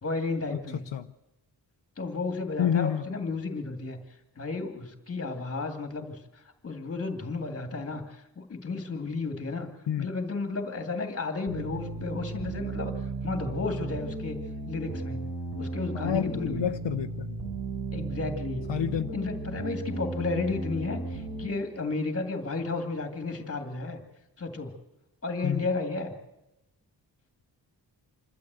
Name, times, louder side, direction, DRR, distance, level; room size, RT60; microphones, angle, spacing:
voice 1, 0.0-0.8 2.0-4.0 4.4-6.2 6.6-9.7 10.0-12.9 13.2-14.4 14.7-15.3 15.6-16.6 17.9-18.7 19.1-24.0 24.4-24.7 25.2-26.1, left 3 dB, 35° left, 2.1 m, -33 dB
voice 2, 2.6-3.0 9.9-10.1 15.9-17.4 18.7-19.2 25.4-25.6, left 9 dB, 90° left, 0.8 m, -28 dB
sound 1, 11.5-21.5, right 3 dB, 65° right, 6.1 m, -35 dB
27.0 x 12.0 x 8.1 m
wide cardioid pair, 180°, 43 cm